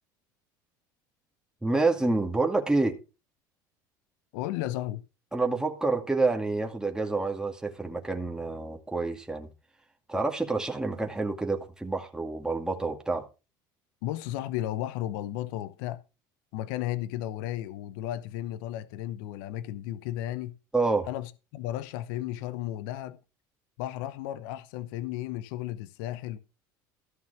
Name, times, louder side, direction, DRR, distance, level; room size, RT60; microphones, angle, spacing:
voice 1, 1.6-3.0 5.3-9.5 10.1-13.2 20.7-21.1, right 3 dB, 5° right, 2.2 m, -28 dB
voice 2, 4.3-5.0 14.0-16.0 16.5-20.5 21.1-23.2 23.8-26.4, left 13 dB, 75° left, 0.9 m, -34 dB
14.5 x 5.8 x 5.9 m
hypercardioid pair, 85°, 11 cm